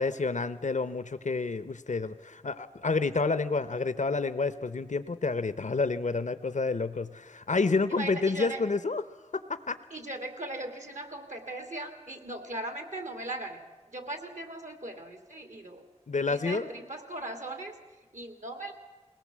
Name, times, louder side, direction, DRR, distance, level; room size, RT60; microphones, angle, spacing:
voice 1, 0.0-9.0 9.5-9.8 16.1-16.7, left 4 dB, 85° left, 13 dB, 0.6 m, -29 dB
voice 2, 7.9-8.6 9.9-13.6 13.9-15.8 16.2-17.7 18.1-18.7, right 1 dB, 85° right, 6 dB, 2.5 m, -38 dB
21.5 x 18.0 x 7.4 m, 1.2 s
wide cardioid pair, 50°, 12 cm